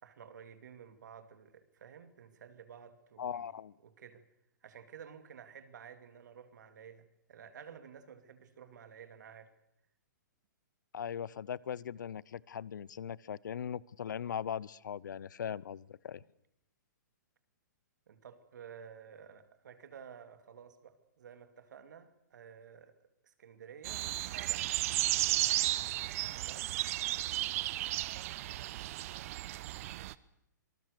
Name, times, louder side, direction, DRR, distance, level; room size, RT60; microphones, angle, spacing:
voice 1, 0.0-3.5 3.8-4.2 4.6-9.5 18.1-23.0 23.2-24.1 24.3-24.7 26.3-26.7, right 7 dB, 65° right, 9 dB, 2.7 m, -52 dB
voice 2, 3.2-3.7 10.9-16.2, left 8 dB, 70° left, 24 dB, 0.7 m, -39 dB
sound 1, 23.8-30.1, right 16 dB, 45° right, 0.9 m, -34 dB
26.0 x 20.0 x 6.8 m, 0.81 s
hypercardioid pair, 130°, 10 cm